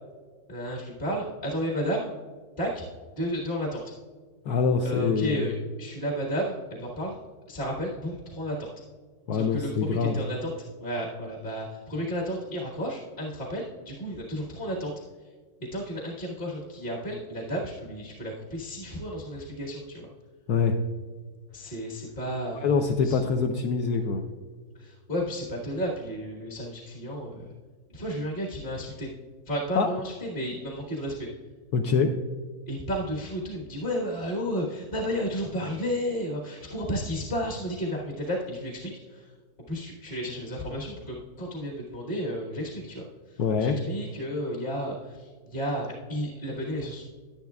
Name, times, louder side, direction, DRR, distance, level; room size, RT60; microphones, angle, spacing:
voice 1, 0.5-2.1 2.6-2.8 3.2-3.8 4.8-7.2 7.5-8.7 9.3-10.5 10.8-14.9 15.7-20.1 21.5-22.7 23.0-23.2 24.8-27.5 27.9-29.1 29.5-31.1 32.7-39.3 39.7-43.0 43.3-47.0, equal, 30° left, -3 dB, 1.5 m, -32 dB
voice 2, 4.5-5.4 9.3-10.2 20.5-20.7 22.6-24.2 29.7-29.9 31.7-32.1 43.4-43.8, left 5 dB, 70° left, 4 dB, 1.1 m, -24 dB
11.0 x 10.5 x 2.3 m, 1.5 s
omnidirectional pair, 1.8 m